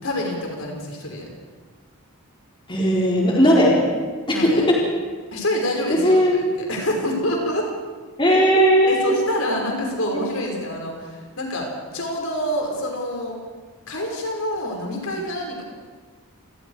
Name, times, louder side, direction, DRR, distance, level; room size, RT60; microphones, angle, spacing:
voice 1, 0.0-1.3 4.3-4.6 5.3-6.2 6.7-7.7 8.9-11.7 11.9-13.4 13.9-15.6, left 1 dB, 70° left, 0 dB, 5.5 m, -26 dB
voice 2, 2.7-3.7 4.3-4.4 5.9-6.4 8.2-9.1, equal, 20° left, -4 dB, 4.2 m, -17 dB
28.0 x 20.0 x 4.9 m, 1.4 s
head